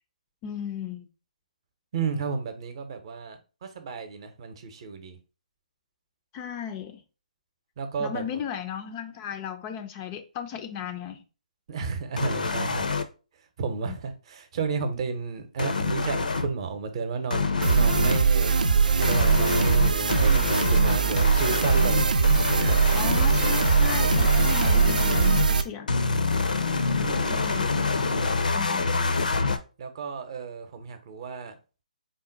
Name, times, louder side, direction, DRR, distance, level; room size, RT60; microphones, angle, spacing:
voice 1, 0.4-1.1 6.3-7.0 8.0-11.2 13.8-14.0 21.0-21.2 22.9-26.0 27.2-27.7 28.5-29.1, left 8 dB, 25° left, 0.4 m, -36 dB
voice 2, 1.9-5.2 7.8-8.2 11.7-12.8 13.6-18.6 19.0-22.1 22.6-22.8 27.0-27.5 28.2-28.5 29.8-31.5, right 5 dB, 40° right, 0.7 m, -32 dB
sound 1, 12.2-13.0 15.6-16.5 17.3-18.2 19.0-25.5 25.9-29.6, left 4 dB, 75° left, 0.6 m, -26 dB
sound 2, 17.6-25.6, right 5 dB, 70° right, 0.5 m, -21 dB
3.8 x 2.2 x 3.8 m
figure-of-eight pair, 145°, 4 cm